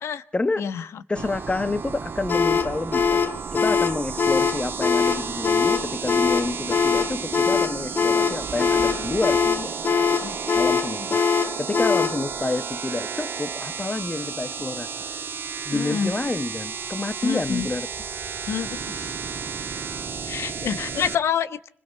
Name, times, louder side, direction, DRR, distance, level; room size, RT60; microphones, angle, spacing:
voice 1, 0.3-0.7 1.1-3.2 3.5-9.8 10.5-14.9 15.6-17.9, left 2 dB, 25° left, 1.2 m, -28 dB
sound 1, 1.2-21.2, right 6 dB, 60° right, 1.6 m, -33 dB
sound 2, 2.3-12.2, left 6 dB, 50° left, 1.5 m, -22 dB
voice 2, 15.7-16.1 17.2-17.7 18.5-19.2 19.7-19.8 20.2-21.7, left 8 dB, 90° left, 1.1 m, -28 dB
30.0 x 26.0 x 4.6 m
cardioid pair, 95°, 4 cm